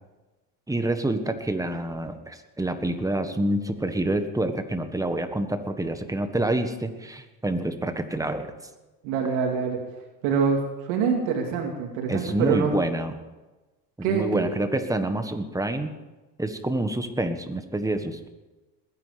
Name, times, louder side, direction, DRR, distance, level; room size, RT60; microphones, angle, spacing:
voice 1, 0.7-8.5 12.1-13.1 14.0-15.9 16.4-18.3, right 1 dB, 5° right, 8 dB, 1.5 m, -27 dB
voice 2, 9.0-9.8 10.2-10.6 10.8-12.7 14.0-14.4, right 6 dB, 80° right, 1 dB, 2.7 m, -25 dB
21.0 x 10.0 x 5.1 m, 1.1 s
supercardioid pair, 105°, 45 cm